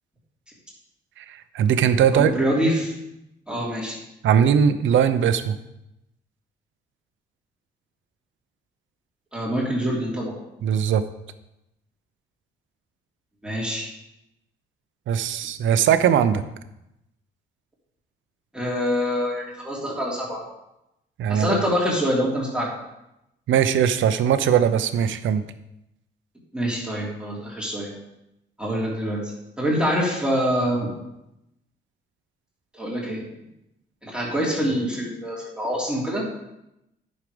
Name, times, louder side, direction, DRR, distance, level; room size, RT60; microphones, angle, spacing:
voice 1, 1.2-2.3 4.2-5.6 10.6-11.0 15.1-16.4 21.2-21.6 23.5-25.4, right 8 dB, 75° right, 11 dB, 0.8 m, -20 dB
voice 2, 2.1-2.9 3.5-4.0 9.3-10.3 13.4-13.9 18.5-20.4 21.3-22.7 26.5-27.9 28.6-29.3 29.6-30.9 32.7-33.2 34.0-36.3, equal, 5° right, -4 dB, 3.0 m, -25 dB
9.6 x 6.5 x 5.2 m, 0.88 s
cardioid pair, 90°, 20 cm